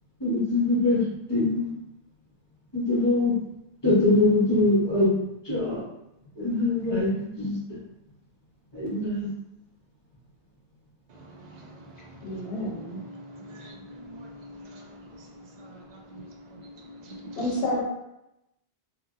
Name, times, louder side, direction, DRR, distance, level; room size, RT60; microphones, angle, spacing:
voice 1, 0.2-1.8 2.7-3.3 3.8-5.1 5.4-5.8 6.4-7.8 8.7-9.3, left 2 dB, 25° left, -7 dB, 0.8 m, -23 dB
voice 2, 11.1-17.4, equal, 50° right, -1 dB, 0.6 m, -45 dB
voice 3, 12.2-13.0 17.4-17.8, left 1 dB, 75° left, -3 dB, 0.9 m, -29 dB
2.9 x 2.5 x 2.4 m, 0.86 s
omnidirectional pair, 1.0 m